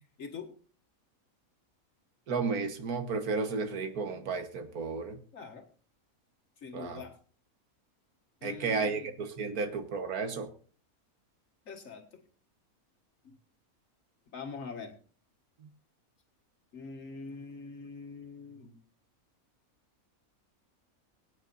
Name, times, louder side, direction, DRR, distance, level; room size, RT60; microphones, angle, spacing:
voice 1, 0.2-0.5 5.3-5.6 6.6-7.1 8.4-9.1 11.7-12.0 14.3-15.0 16.7-18.7, left 5 dB, 65° left, 3 dB, 2.0 m, -43 dB
voice 2, 2.3-5.2 6.7-7.0 8.4-10.5, right 4 dB, 85° right, 8 dB, 1.7 m, -33 dB
23.5 x 8.8 x 2.6 m, 0.41 s
omnidirectional pair, 1.5 m